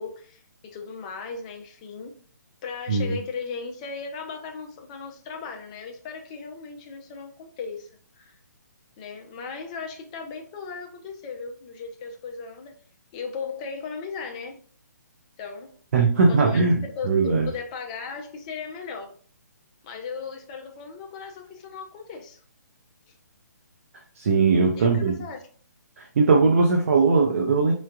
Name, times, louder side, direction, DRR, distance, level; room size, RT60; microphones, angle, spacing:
voice 1, 0.0-2.2 2.6-7.9 8.1-8.4 9.0-12.7 13.1-14.6 15.4-15.8 16.3-16.7 17.0-19.1 19.8-22.4 24.8-25.4, left 5 dB, 20° left, 0.5 m, -37 dB
voice 2, 15.9-17.5 24.2-25.1 26.0-27.7, right 4 dB, 45° right, 0.6 m, -20 dB
4.3 x 3.1 x 2.4 m
hypercardioid pair, 165°, 10 cm